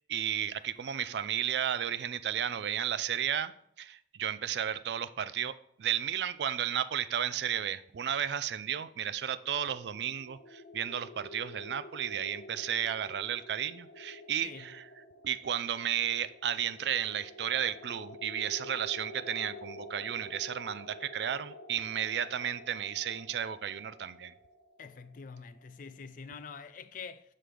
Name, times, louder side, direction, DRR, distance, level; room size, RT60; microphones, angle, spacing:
voice 1, 0.0-3.5 3.8-14.9 15.2-24.3, right 9 dB, 70° right, 0.4 m, -33 dB
sound 1, 9.1-25.9, left 1 dB, 65° left, 0.8 m, -49 dB
voice 2, 14.4-14.7 24.8-27.3, left 5 dB, 50° left, 0.4 m, -46 dB
7.5 x 6.2 x 3.4 m
head